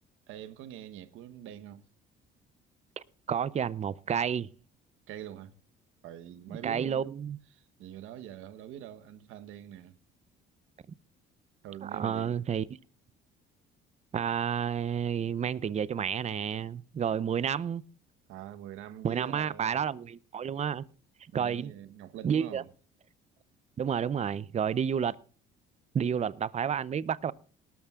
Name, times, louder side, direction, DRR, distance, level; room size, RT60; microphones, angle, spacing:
voice 1, 0.3-1.8 5.1-5.6 6.0-7.1 7.5-9.9 11.6-12.3 18.3-19.8 21.3-22.7, right 11 dB, 75° right, 1.1 m, -44 dB
voice 2, 3.3-4.5 6.5-7.4 11.8-12.6 14.1-17.8 19.0-20.8 21.3-21.7 22.2-22.6 23.8-25.2 25.9-27.3, right 8 dB, 35° right, 0.6 m, -30 dB
19.0 x 13.0 x 2.4 m
cardioid pair, 95°, 21 cm